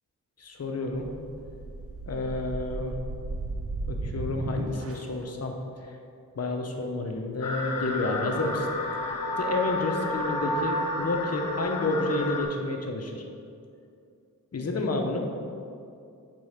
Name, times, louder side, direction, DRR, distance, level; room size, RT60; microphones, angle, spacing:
voice 1, 0.4-1.1 2.1-3.0 3.9-5.5 5.8-5.9 6.4-8.7 9.4-13.2 14.5-15.3, left 2 dB, 50° left, 3 dB, 0.9 m, -30 dB
sound 1, 0.9-5.3, right 2 dB, 45° right, 0.7 m, -35 dB
sound 2, 7.4-12.4, left 1 dB, 90° left, 0.9 m, -31 dB
4.7 x 4.6 x 5.7 m, 2.5 s
cardioid pair, 60°, 32 cm